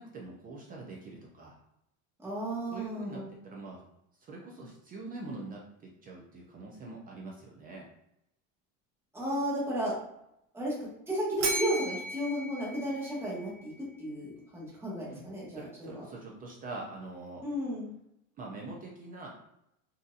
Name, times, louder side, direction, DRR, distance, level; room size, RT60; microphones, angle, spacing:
voice 1, 0.0-1.6 2.7-3.8 4.2-7.9 15.1-15.2 15.5-17.4 18.4-19.3, right 2 dB, 25° right, -2 dB, 0.4 m, -44 dB
voice 2, 2.2-3.3 9.1-9.9 10.5-10.7 11.1-13.7 14.0-16.0 17.4-17.9, equal, 5° right, -7 dB, 1.2 m, -33 dB
Bell, 11.4-13.6, right 2 dB, 85° right, 1.0 m, -36 dB
3.7 x 2.7 x 2.4 m, 0.80 s
cardioid pair, 150°, 40 cm